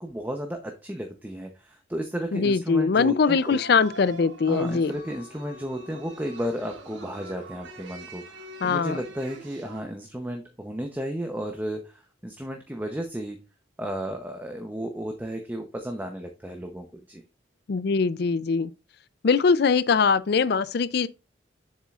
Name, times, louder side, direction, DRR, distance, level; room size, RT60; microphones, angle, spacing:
voice 1, 0.0-3.6 4.5-13.4 13.8-17.2, equal, 10° right, 0.8 m, -33 dB
voice 2, 2.3-4.9 8.6-9.0 17.7-18.7 19.2-21.1, left 5 dB, 60° left, 0.4 m, -22 dB
sound 1, 3.3-9.8, right 2 dB, 85° right, 1.4 m, -44 dB
7.3 x 7.3 x 2.4 m
head